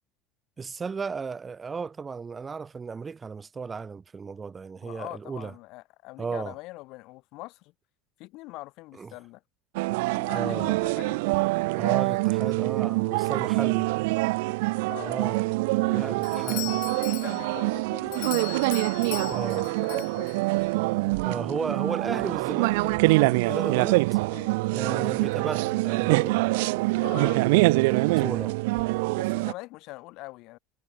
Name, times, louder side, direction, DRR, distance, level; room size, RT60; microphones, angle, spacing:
voice 1, 0.6-5.5 6.2-6.5 9.0-9.1 10.3-10.8 11.8-13.9 15.0-15.4 15.9-16.8 19.3-19.6 21.2-24.0 24.7-26.8 27.3-28.6, right 5 dB, 15° right, 1.5 m, -35 dB
voice 2, 4.8-7.7 8.2-9.4 10.1-11.3 13.7-14.0 14.9-15.2 15.9-20.3 24.3-24.5 26.9-27.4 29.1-30.6, left 21 dB, 55° left, 1.8 m, -43 dB
sound 1, 9.7-29.5, right 24 dB, 90° right, 0.3 m, -25 dB
Doorbell, 16.2-20.7, left 33 dB, 75° left, 0.4 m, -39 dB
cardioid pair, 165°, 0 cm